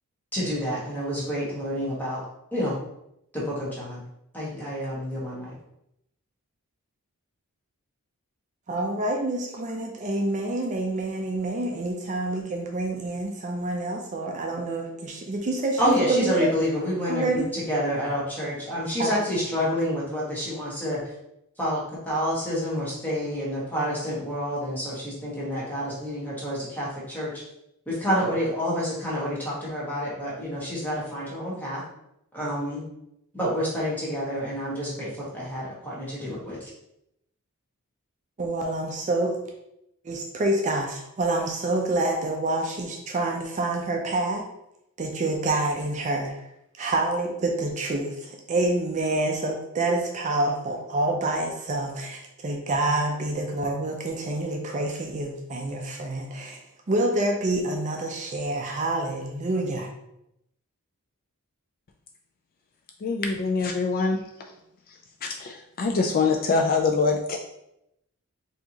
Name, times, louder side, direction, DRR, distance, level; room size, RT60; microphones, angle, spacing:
voice 1, 0.3-2.2 2.5-2.8 3.3-4.0 4.3-5.5 15.8-17.3 17.5-21.0 21.6-27.4 27.9-31.8 32.3-32.8 33.3-36.7, equal, 10° left, -7 dB, 1.3 m, -28 dB
voice 2, 8.7-16.5 17.1-17.5 19.0-19.1 38.4-39.4 40.0-44.4 45.0-46.4 46.8-56.6 56.9-59.9, right 2 dB, 35° right, 2 dB, 0.5 m, -27 dB
voice 3, 63.0-64.2 65.2-67.4, left 4 dB, 40° left, 3 dB, 0.3 m, -24 dB
4.4 x 2.8 x 2.8 m, 0.81 s
head